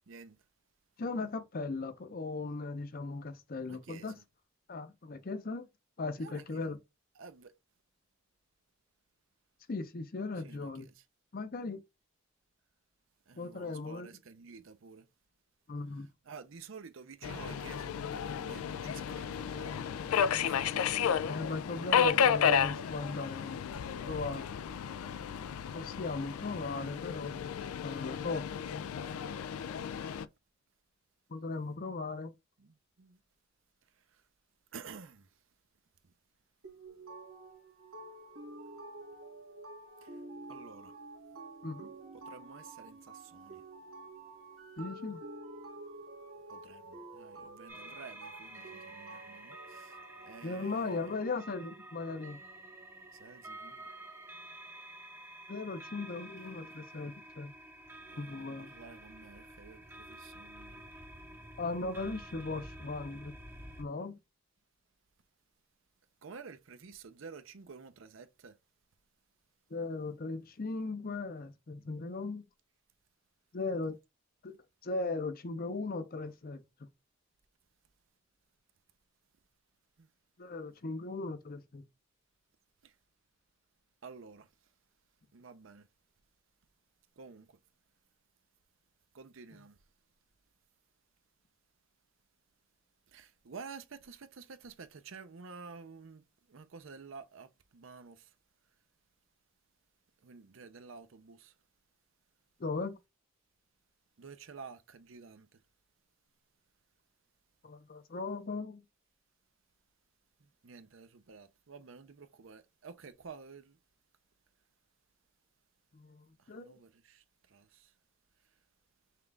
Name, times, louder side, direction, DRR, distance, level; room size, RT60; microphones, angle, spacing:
voice 1, 0.1-0.4 3.7-4.2 6.2-6.7 7.2-7.5 10.4-11.0 13.3-15.1 15.9-19.7 20.0-21.0 31.5-31.8 32.2-32.3 32.6-33.2 33.9-34.2 34.7-35.4 36.0-36.1 40.0-40.2 40.5-41.0 42.1-43.6 46.5-51.1 53.1-53.9 56.4-56.6 58.1-60.9 66.2-68.6 80.0-80.1 82.8-83.0 84.0-84.5 85.3-85.9 87.2-87.6 89.1-89.8 93.1-98.3 100.2-101.5 104.2-105.6 110.4-113.8 116.4-117.9, right 5 dB, 65° right, 0.6 m, -51 dB
voice 2, 1.0-4.1 4.7-5.7 6.0-6.8 9.7-10.9 11.3-11.8 13.4-14.1 15.7-16.1 21.3-23.6 24.0-24.4 25.7-27.4 27.8-28.5 31.3-32.3 41.6-41.9 44.8-45.2 50.4-52.4 55.5-57.5 58.2-58.7 61.6-63.3 63.8-64.2 69.7-72.4 73.5-74.0 74.4-74.6 74.8-76.9 80.4-81.8 102.6-103.0 107.6-108.8 115.9-116.7, left 3 dB, 45° left, 0.6 m, -38 dB
Subway metro underground, 17.2-30.3, left 7 dB, 90° left, 0.4 m, -32 dB
sound 1, 36.6-50.4, right 2 dB, 85° right, 1.5 m, -49 dB
sound 2, 47.7-63.8, right 1 dB, 10° right, 0.6 m, -50 dB
5.7 x 2.4 x 3.3 m
head